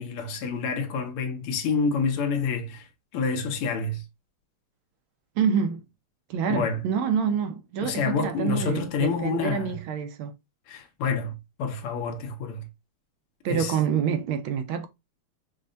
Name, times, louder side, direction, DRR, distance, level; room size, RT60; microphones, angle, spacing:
voice 1, 0.0-2.9 3.1-4.0 6.5-6.8 7.8-9.8 10.7-12.7 13.5-13.8, left 5 dB, 80° left, 1.7 m, -28 dB
voice 2, 5.4-5.8 6.3-10.3 13.4-14.9, right 7 dB, 75° right, 1.3 m, -27 dB
5.5 x 2.1 x 2.5 m
omnidirectional pair, 2.4 m